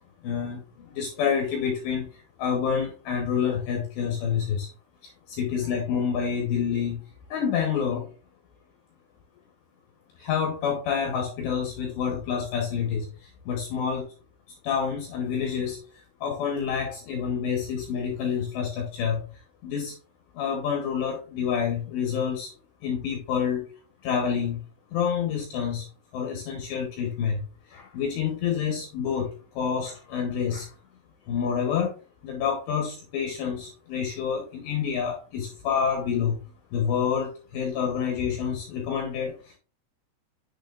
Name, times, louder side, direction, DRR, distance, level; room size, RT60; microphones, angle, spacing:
voice 1, 0.2-4.7 5.0-7.0 7.3-8.1 10.2-14.1 14.6-15.8 16.2-19.2 19.6-19.9 20.3-22.5 22.8-23.7 24.0-24.6 24.9-25.9 26.1-30.7 31.3-31.9 32.2-36.4 36.7-39.6, left 7 dB, 70° left, 0 dB, 3.1 m, -28 dB
9.1 x 6.7 x 2.4 m, 0.36 s
omnidirectional pair, 5.5 m